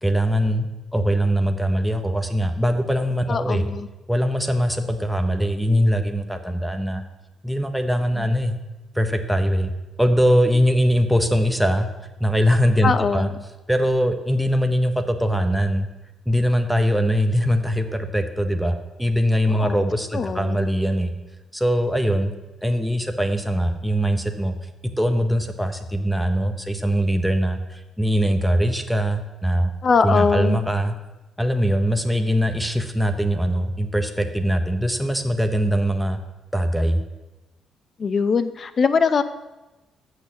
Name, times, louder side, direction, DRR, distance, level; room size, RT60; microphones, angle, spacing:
voice 1, 0.0-3.7 4.1-7.0 7.4-8.6 8.9-9.7 10.0-11.9 12.2-13.3 13.7-15.9 16.3-21.1 21.5-22.3 22.6-24.6 25.0-29.7 30.0-31.0 31.4-36.2 36.5-37.0, equal, ahead, 5 dB, 0.9 m, -21 dB
voice 2, 3.3-3.9 8.2-8.3 12.8-13.4 19.5-19.8 20.1-20.7 29.8-30.7 38.0-39.2, left 5 dB, 45° left, 12 dB, 0.6 m, -22 dB
8.1 x 6.6 x 7.0 m, 1.1 s
cardioid pair, 90°, 0 cm